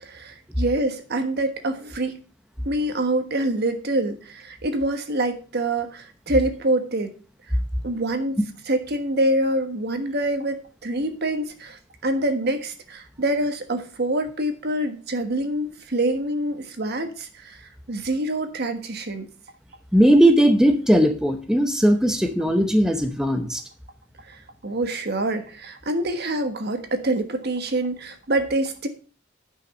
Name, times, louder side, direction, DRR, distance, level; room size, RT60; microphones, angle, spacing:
voice 1, 0.0-2.2 2.6-7.1 7.8-8.4 8.7-19.3 24.3-28.9, right 1 dB, 55° right, 7 dB, 1.3 m, -26 dB
voice 2, 19.9-23.6, equal, 5° right, 5 dB, 0.8 m, -18 dB
9.7 x 5.9 x 5.4 m, 0.38 s
head